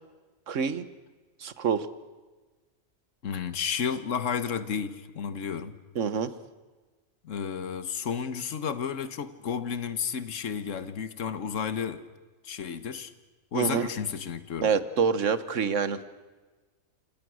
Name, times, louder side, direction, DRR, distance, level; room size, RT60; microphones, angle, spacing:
voice 1, 0.5-0.8 1.4-1.9 5.9-6.3 13.5-13.9 14.6-16.0, right 6 dB, 65° right, 13 dB, 1.5 m, -26 dB
voice 2, 3.2-5.7 7.2-12.0 12.4-13.1 13.5-14.7, left 7 dB, 70° left, 12 dB, 1.6 m, -32 dB
28.5 x 27.5 x 6.3 m, 1.3 s
omnidirectional pair, 1.4 m